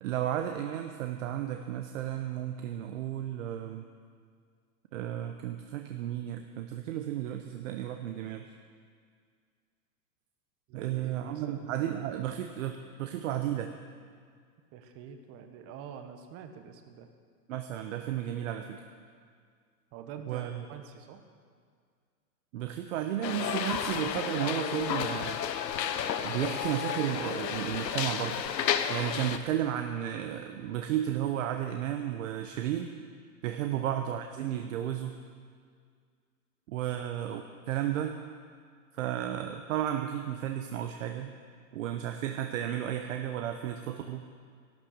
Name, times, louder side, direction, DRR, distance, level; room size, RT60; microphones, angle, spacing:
voice 1, 0.0-3.8 4.9-8.4 10.7-13.7 17.5-18.8 20.3-20.5 22.5-25.4 26.2-28.4 28.9-32.9 33.4-35.2 36.7-38.2 38.9-41.3 41.7-44.2, right 11 dB, 50° right, 5 dB, 1.0 m, -33 dB
voice 2, 10.7-11.7 14.7-17.1 19.9-21.2 33.7-33.8 36.9-37.1, right 7 dB, 30° right, 7 dB, 1.3 m, -46 dB
sound 1, 23.2-29.4, left 9 dB, 80° left, 1.1 m, -32 dB
13.5 x 12.0 x 6.6 m, 2.1 s
hypercardioid pair, 140°, 49 cm